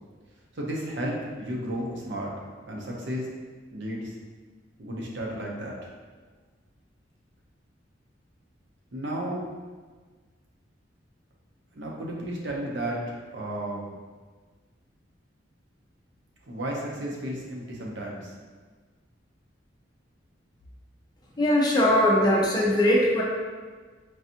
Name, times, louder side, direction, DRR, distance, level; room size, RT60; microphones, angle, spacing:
voice 1, 0.5-2.3 2.7-3.3 3.7-4.1 4.8-5.8 8.9-9.4 11.7-13.9 16.4-18.3, right 1 dB, 65° right, -2 dB, 0.7 m, -33 dB
voice 2, 21.4-23.2, left 1 dB, 20° left, -4 dB, 0.6 m, -20 dB
4.7 x 2.6 x 2.8 m, 1.4 s
head